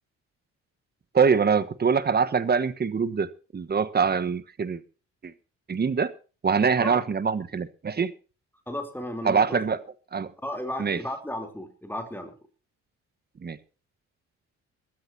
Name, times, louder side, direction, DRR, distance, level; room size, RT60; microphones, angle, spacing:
voice 1, 1.1-4.8 5.2-5.3 5.7-6.1 6.4-8.1 9.2-9.8 10.1-10.3 10.8-11.0 13.4-13.6, right 6 dB, 30° right, 1.3 m, -24 dB
voice 2, 8.7-9.8 10.4-12.3, left 1 dB, 5° left, 3.3 m, -34 dB
23.5 x 13.0 x 2.8 m
cardioid pair, 90°, 30 cm